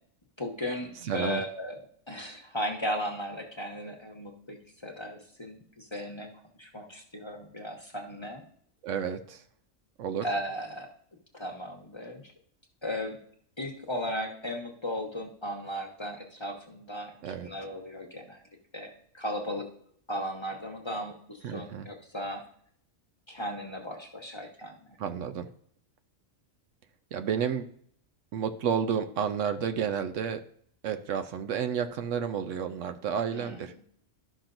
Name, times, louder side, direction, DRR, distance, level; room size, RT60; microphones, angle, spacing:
voice 1, 0.4-1.8 2.1-6.3 6.6-8.4 10.2-10.9 11.3-12.3 12.8-13.2 13.6-18.4 18.7-19.7 20.1-22.4 23.3-25.0 33.3-33.6, equal, 25° left, 1 dB, 1.0 m, -36 dB
voice 2, 1.1-1.4 8.8-9.4 10.0-10.2 17.2-17.5 21.4-21.9 25.0-25.5 27.1-27.7 28.3-30.4 30.8-33.7, right 7 dB, 70° right, 9 dB, 0.9 m, -31 dB
12.5 x 5.8 x 2.6 m, 0.63 s
omnidirectional pair, 1.4 m